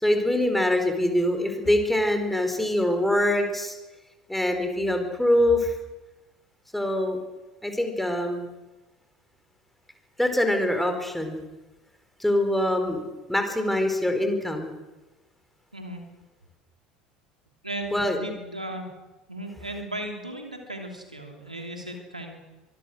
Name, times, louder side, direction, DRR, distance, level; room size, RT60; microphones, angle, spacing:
voice 1, 0.0-3.8 4.3-5.7 6.7-7.2 7.6-8.5 10.2-11.4 12.2-13.0 13.3-14.7 17.9-18.2, left 1 dB, 5° left, 5 dB, 4.5 m, -24 dB
voice 2, 17.6-18.9 19.3-22.3, right 1 dB, 90° right, 3 dB, 3.1 m, -36 dB
24.0 x 20.5 x 6.4 m, 1.1 s
figure-of-eight pair, 70°, 4 cm